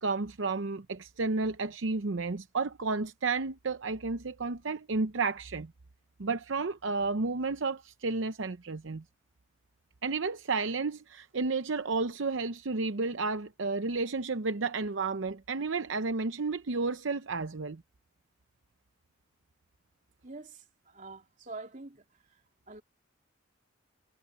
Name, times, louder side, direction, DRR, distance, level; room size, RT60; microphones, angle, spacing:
voice 1, 0.0-5.7 6.2-9.0 10.0-17.8, right 3 dB, 65° right, 0.7 m, -32 dB
voice 2, 20.2-22.0 22.7-22.8, right 3 dB, 40° right, 3.2 m, -45 dB
head